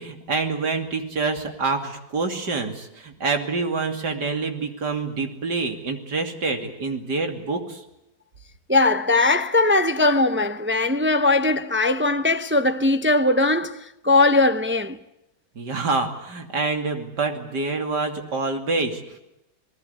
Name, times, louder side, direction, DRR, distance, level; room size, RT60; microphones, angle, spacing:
voice 1, 0.0-7.8 15.6-19.2, right 3 dB, 85° right, 3.4 m, -26 dB
voice 2, 8.7-15.0, left 2 dB, 15° right, 0.3 m, -20 dB
27.5 x 19.5 x 8.3 m
omnidirectional pair, 1.8 m